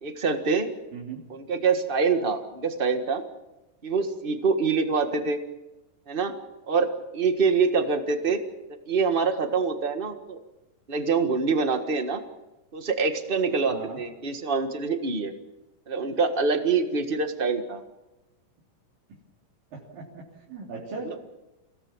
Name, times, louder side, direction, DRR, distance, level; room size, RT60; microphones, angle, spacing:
voice 1, 0.0-0.7 1.3-3.2 3.8-5.4 6.1-6.3 6.7-8.4 8.9-10.4 10.9-12.2 12.7-15.3 15.9-17.8 21.0-21.1, right 4 dB, 55° right, 6 dB, 0.6 m, -25 dB
voice 2, 0.9-1.2 13.7-14.0 19.7-21.2, right 4 dB, 85° right, -4 dB, 5.1 m, -38 dB
29.0 x 17.5 x 7.3 m, 1.0 s
omnidirectional pair, 3.9 m